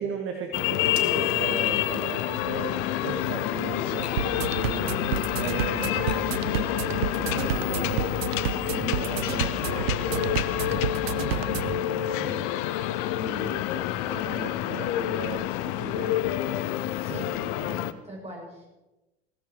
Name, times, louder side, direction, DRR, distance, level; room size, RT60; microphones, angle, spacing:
voice 1, 0.0-4.9 5.3-8.4 8.7-12.5 13.2-16.6 17.0-17.2, right 5 dB, 40° right, 3 dB, 1.9 m, -37 dB
sound 1, 0.5-17.9, left 13 dB, 55° left, 0.8 m, -28 dB
Typewriter, 0.9-6.4, left 5 dB, 75° left, 2.0 m, -45 dB
sound 2, 4.2-11.8, right 11 dB, 65° right, 0.7 m, -31 dB
voice 2, 8.5-8.9 13.1-13.4 17.0-18.7, right 1 dB, 20° right, -2 dB, 7.0 m, -42 dB
16.5 x 13.5 x 4.7 m, 1.0 s
figure-of-eight pair, 70°, 33 cm